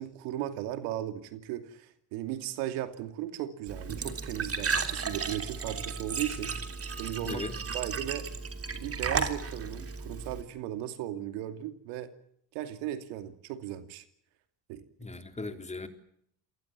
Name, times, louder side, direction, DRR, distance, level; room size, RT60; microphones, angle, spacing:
voice 1, 0.0-8.3 8.7-12.1 12.5-14.0 14.7-14.8 15.4-15.5, right 12 dB, 80° right, 8 dB, 2.6 m, -37 dB
Glass / Trickle dribble / Fill (with liquid), 3.7-10.4, right 5 dB, 35° right, 3.2 m, -34 dB
voice 2, 7.2-7.5 15.0-15.9, left 3 dB, 15° left, 6 dB, 3.6 m, -37 dB
28.0 x 19.5 x 7.5 m, 0.70 s
supercardioid pair, 85°, 41 cm